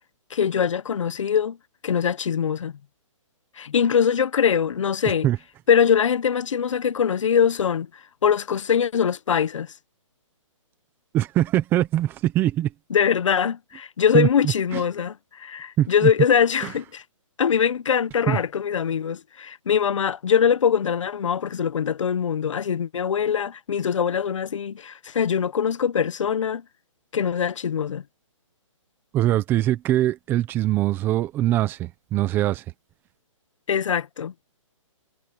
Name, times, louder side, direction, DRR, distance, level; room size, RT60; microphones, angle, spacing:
voice 1, 0.3-1.6 1.8-2.7 3.6-5.3 5.7-7.9 8.2-9.7 12.9-17.0 17.4-26.6 27.1-28.0 33.7-34.3, left 7 dB, 65° left, 1.2 m, -22 dB
voice 2, 11.1-12.7 14.1-14.3 14.7-14.8 15.8-16.1 18.3-18.4 29.1-32.6, right 13 dB, 10° right, 0.9 m, -22 dB
hypercardioid pair, 165°, 17 cm